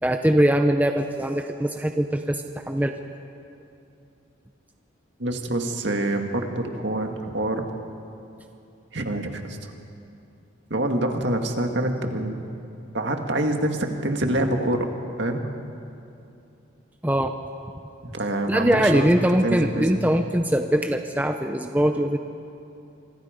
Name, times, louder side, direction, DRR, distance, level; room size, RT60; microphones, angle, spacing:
voice 1, 0.0-2.9 17.0-17.3 18.5-22.2, equal, 10° right, 5 dB, 0.7 m, -22 dB
voice 2, 5.2-7.7 8.9-9.6 10.7-12.5 12.9-14.9 15.2-15.4 18.0-19.1 19.4-20.1, right 1 dB, 60° right, 4 dB, 2.0 m, -26 dB
26.5 x 25.0 x 5.2 m, 2.7 s
head